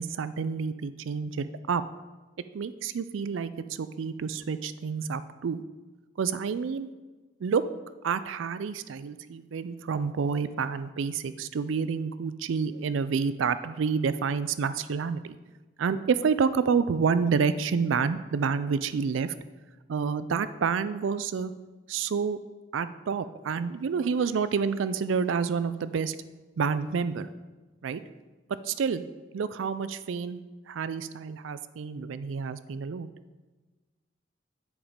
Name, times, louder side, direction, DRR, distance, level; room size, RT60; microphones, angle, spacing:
voice 1, 0.0-1.8 2.5-3.5 3.8-5.6 6.2-6.9 7.4-7.6 8.0-15.4 15.8-19.3 19.9-21.5 21.9-22.4 22.7-26.2 26.6-27.3 27.8-28.0 28.6-29.0 29.3-30.4 30.7-33.1, right 5 dB, 90° right, 14 dB, 0.4 m, -28 dB
10.0 x 5.1 x 5.0 m, 1.2 s
head